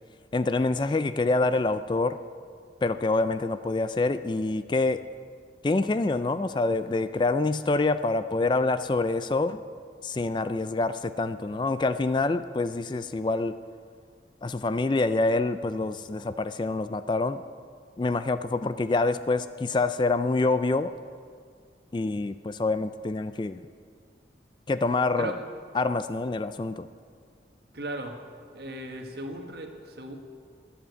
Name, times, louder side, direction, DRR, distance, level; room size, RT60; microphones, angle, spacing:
voice 1, 0.3-2.2 2.8-5.0 5.6-9.6 10.0-13.6 14.4-17.4 18.0-20.9 21.9-23.6 24.7-25.3 25.7-26.9, left 3 dB, 25° left, 12 dB, 0.3 m, -26 dB
voice 2, 27.7-28.2 28.5-30.2, right 1 dB, 60° right, 4 dB, 1.6 m, -36 dB
12.5 x 10.0 x 8.3 m, 2.1 s
head